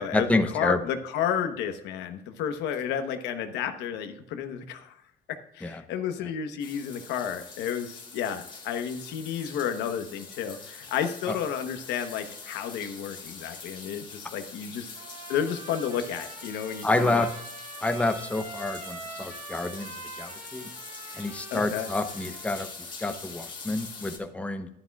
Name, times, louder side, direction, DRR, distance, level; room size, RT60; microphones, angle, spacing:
voice 1, 0.0-0.8 5.6-5.8 11.3-11.4 16.8-17.3 17.8-20.7 21.1-22.7 23.0-24.7, left 2 dB, 10° left, 7 dB, 0.8 m, -28 dB
voice 2, 0.5-5.0 5.5-14.9 15.3-17.3 21.5-21.9, left 8 dB, 90° left, 7 dB, 1.0 m, -31 dB
sound 1, 6.6-24.2, left 4 dB, 30° left, 2.0 m, -44 dB
Trumpet, 14.9-22.5, right 3 dB, 65° right, 3.5 m, -44 dB
11.0 x 11.0 x 2.4 m, 0.77 s
cardioid pair, 110°, 17 cm